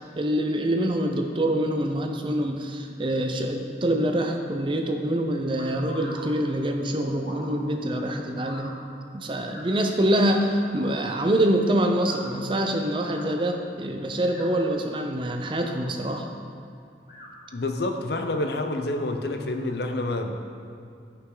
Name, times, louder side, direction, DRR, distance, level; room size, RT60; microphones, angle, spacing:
voice 1, 0.1-8.7 9.1-16.3, right 1 dB, 30° right, 4 dB, 0.5 m, -25 dB
sound 1, 5.6-6.2 7.2-7.5 8.4-8.7 9.5-9.7 10.6-10.8 11.9-12.2 13.0-13.3 14.1-14.6 15.4-15.8 17.0-17.3, left 2 dB, 50° left, 1.9 m, -43 dB
voice 2, 17.5-20.4, left 2 dB, 65° left, 5 dB, 0.6 m, -28 dB
11.0 x 5.7 x 3.8 m, 2.4 s
head